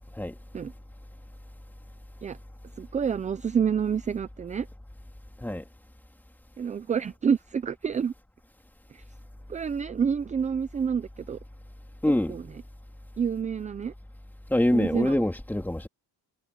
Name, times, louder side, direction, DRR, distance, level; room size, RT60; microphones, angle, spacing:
voice 1, 2.8-4.7 6.6-8.1 8.9-9.0 9.5-11.4 12.3-12.4 13.2-13.9 14.7-15.1, right 7 dB, 20° right, 0.3 m, -28 dB
voice 2, 12.0-12.4 14.5-15.9, left 1 dB, 5° left, 2.7 m, -25 dB
cardioid pair, 165°, 43 cm